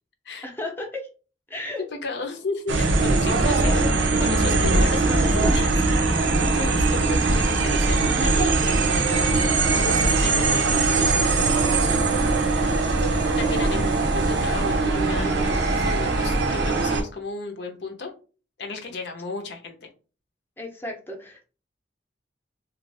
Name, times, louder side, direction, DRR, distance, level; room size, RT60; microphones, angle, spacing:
voice 1, 0.4-1.1 1.5-1.9 3.5-4.0 16.0-16.3 20.6-21.5, left 1 dB, 10° left, 1 dB, 0.6 m, -34 dB
voice 2, 1.8-3.8 4.2-12.8 13.4-18.1 18.6-19.9, left 3 dB, 65° left, 4 dB, 0.6 m, -34 dB
sound 1, 2.7-17.0, right 3 dB, 80° right, 0.6 m, -21 dB
2.5 x 2.3 x 3.3 m, 0.36 s
head